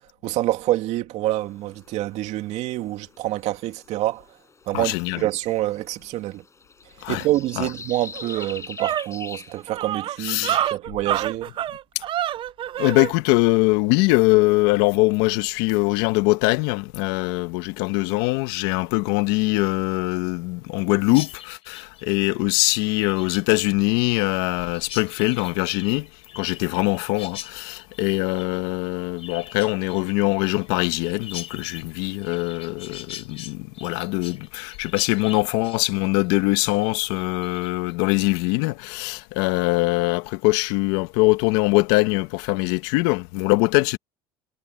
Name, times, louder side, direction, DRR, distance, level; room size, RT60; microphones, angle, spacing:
voice 1, 0.2-4.2 4.7-6.4 7.1-11.5, right 15 dB, 60° right, 2.6 m, -27 dB
sound 1, 1.2-10.7, left 4 dB, 20° left, 5.9 m, -44 dB
voice 2, 4.7-5.2 7.0-7.2 7.6-7.7 10.2-10.7 12.8-26.1 26.3-44.0, left 22 dB, 75° left, 1.7 m, -22 dB
sound 2, 7.7-7.8 8.1-13.1, right 11 dB, 40° right, 0.5 m, -27 dB
Chirp tweet, 21.1-37.9, left 12 dB, 50° left, 4.5 m, -42 dB
supercardioid pair, 100°, 13 cm